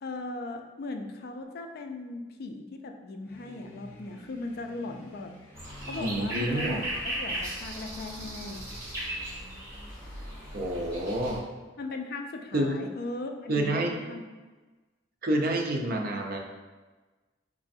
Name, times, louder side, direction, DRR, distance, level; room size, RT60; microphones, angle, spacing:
voice 1, 0.0-5.3 5.9-8.7 11.8-14.2, left 2 dB, 55° left, 5 dB, 0.3 m, -38 dB
sound 1, 3.2-11.0, right 1 dB, 10° left, 0.6 m, -51 dB
sound 2, 5.5-11.4, right 1 dB, 15° right, 1.3 m, -37 dB
voice 2, 6.0-6.9 10.5-11.4 12.5-12.7 13.5-14.0 15.2-16.4, right 1 dB, 50° right, 2 dB, 0.5 m, -28 dB
3.6 x 3.1 x 2.6 m, 1.3 s
head